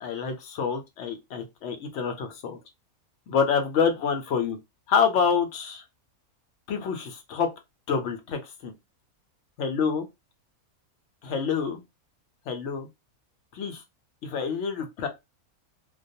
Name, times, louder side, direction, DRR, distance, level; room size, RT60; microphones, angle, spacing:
voice 1, 0.0-2.6 3.3-4.6 4.9-5.8 6.7-7.5 7.9-8.7 9.6-10.1 11.2-11.8 12.5-12.9 13.5-13.8 14.2-15.1, left 6 dB, 65° left, 0.7 m, -27 dB
2.3 x 2.2 x 2.6 m
omnidirectional pair, 1.6 m